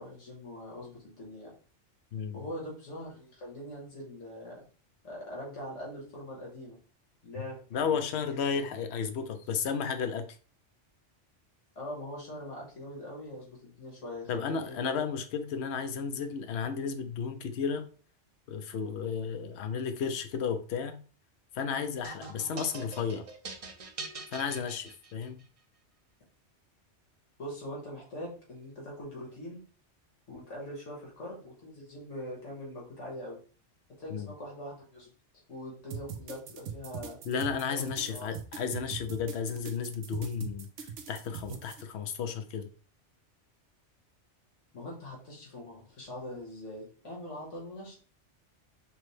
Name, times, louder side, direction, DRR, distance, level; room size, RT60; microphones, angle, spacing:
voice 1, 0.0-1.5 2.3-4.6 5.0-6.8 7.2-8.0 8.4-8.7 11.8-15.1 27.4-29.6 30.3-33.4 34.0-35.1 35.5-37.2 37.7-38.3 44.7-48.0, left 1 dB, 85° left, -4 dB, 1.8 m, -42 dB
voice 2, 7.7-10.3 14.3-17.8 18.5-21.0 21.5-23.3 24.3-25.4 34.1-34.3 37.2-40.7 41.1-42.7, left 6 dB, 65° left, 8 dB, 0.9 m, -33 dB
sound 1, 22.0-25.4, right 4 dB, 45° right, 0.5 m, -43 dB
sound 2, 35.9-41.8, right 7 dB, 80° right, 0.9 m, -41 dB
6.0 x 2.1 x 3.1 m, 0.39 s
omnidirectional pair, 1.2 m